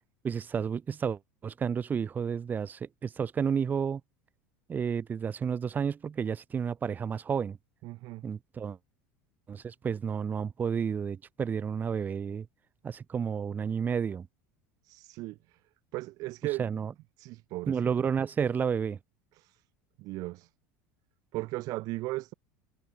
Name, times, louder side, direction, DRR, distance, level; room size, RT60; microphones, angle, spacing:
voice 1, 0.2-4.0 4.7-7.6 8.2-8.8 9.5-12.5 12.8-14.3 16.6-16.9 17.7-19.0, right 7 dB, 25° right, 0.6 m, -31 dB
voice 2, 7.8-8.2 14.8-15.6 15.9-16.7 17.2-18.1 19.4-19.6 20.0-20.5 21.3-22.3, right 20 dB, 60° right, 1.8 m, -37 dB
supercardioid pair, 110°, 7 cm